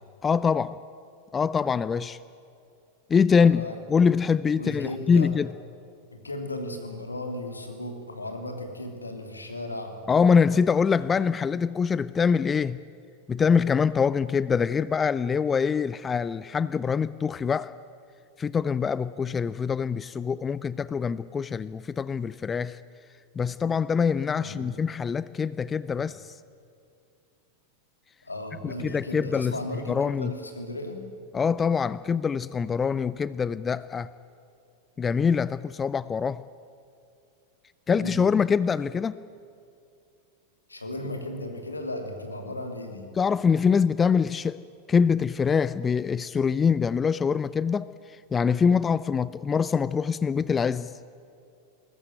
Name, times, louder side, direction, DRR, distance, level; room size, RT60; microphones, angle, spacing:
voice 1, 0.2-0.8 1.3-2.2 3.1-5.5 10.1-12.8 13.3-17.7 18.4-22.8 23.4-26.3 28.6-29.6 29.9-30.3 31.3-34.1 35.0-36.4 37.9-39.2 43.2-44.6 44.9-50.9, left 6 dB, 20° left, 18 dB, 0.5 m, -24 dB
voice 2, 3.4-3.8 4.6-5.3 6.1-9.9 24.4-24.7 26.0-26.1 28.2-31.0 37.9-38.2 40.7-43.0, left 1 dB, 80° left, 4 dB, 3.2 m, -35 dB
21.5 x 20.0 x 9.3 m, 2.6 s
figure-of-eight pair, 90°, 0 cm